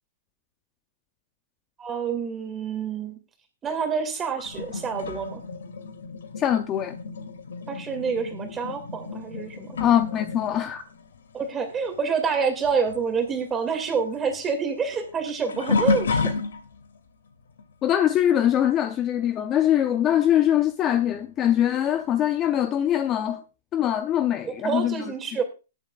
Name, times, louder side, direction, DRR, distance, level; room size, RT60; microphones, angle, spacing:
voice 1, 1.8-3.2 3.6-5.4 7.7-9.8 11.3-16.3 24.4-25.4, right 5 dB, 15° right, 2.3 m, -27 dB
sound 1, 4.4-12.4 12.6-17.0 17.6-17.9 20.2-20.3 21.1-21.2, left 4 dB, 85° left, 2.6 m, -32 dB
voice 2, 6.4-6.9 9.8-10.8 17.8-23.4 23.7-25.0, left 11 dB, 20° left, 0.6 m, -22 dB
20.0 x 8.1 x 2.4 m
hypercardioid pair, 160°, 0 cm